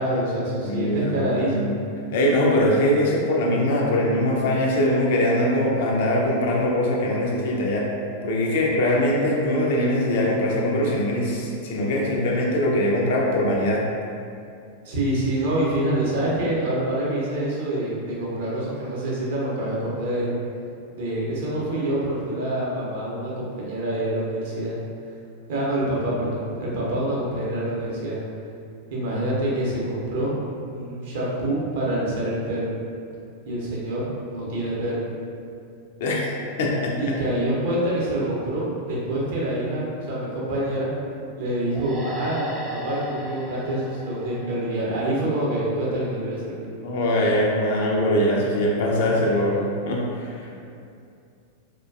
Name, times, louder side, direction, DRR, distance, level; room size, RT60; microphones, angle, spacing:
voice 1, 0.0-1.7 9.0-9.1 14.8-20.3 20.9-24.7 25.5-28.2 28.9-30.4 30.7-32.7 33.5-35.0 37.0-40.9 41.4-46.7, right 1 dB, 55° right, -6 dB, 0.6 m, -26 dB
voice 2, 0.6-1.7 2.1-7.9 8.2-13.8 36.0-36.3 36.6-36.9 46.8-50.7, left 1 dB, 55° left, -2 dB, 0.4 m, -22 dB
sound 1, 41.7-45.2, equal, 20° right, 0.3 m, -35 dB
2.5 x 2.2 x 2.3 m, 2.5 s
figure-of-eight pair, 90°, 0 cm